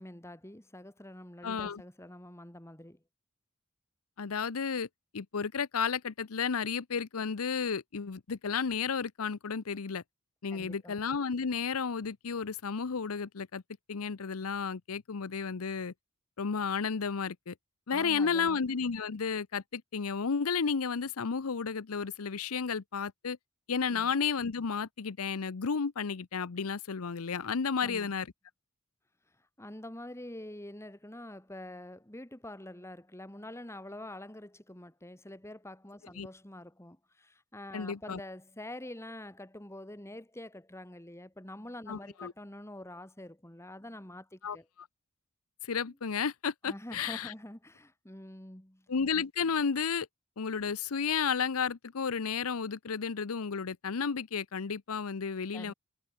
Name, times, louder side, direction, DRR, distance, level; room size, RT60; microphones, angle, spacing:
voice 1, 0.0-3.0 10.5-11.0 17.9-18.7 23.9-24.1 27.8-28.1 29.6-44.7 45.8-46.0 46.6-48.9 55.5-55.7, left 1 dB, 15° left, 2.3 m, -46 dB
voice 2, 1.4-1.8 4.2-4.9 5.1-10.0 10.4-13.6 13.9-15.9 16.4-17.5 17.9-23.4 23.7-28.3 36.2-36.3 37.7-38.2 41.9-42.3 44.4-44.9 45.6-47.3 48.9-50.1 50.4-55.7, left 6 dB, 85° left, 0.7 m, -32 dB
head